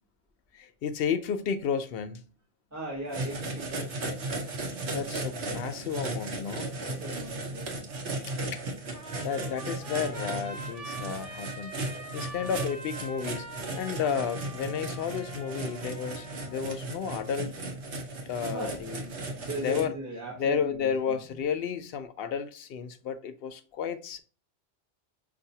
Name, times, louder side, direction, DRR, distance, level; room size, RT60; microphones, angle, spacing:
voice 1, 0.5-2.3 4.9-6.8 8.3-8.6 9.2-11.7 12.1-13.5 13.8-17.5 18.3-19.3 19.6-19.9 20.4-24.2, left 7 dB, 65° left, 0.7 m, -32 dB
voice 2, 2.7-4.2 6.8-7.7 12.3-12.6 18.5-20.9 21.3-21.4, right 1 dB, 15° right, 1.0 m, -38 dB
sound 1, 3.1-19.8, right 2 dB, 65° right, 1.1 m, -36 dB
Trumpet, 8.9-16.6, right 1 dB, 30° right, 1.4 m, -44 dB
5.5 x 2.5 x 2.7 m
omnidirectional pair, 1.2 m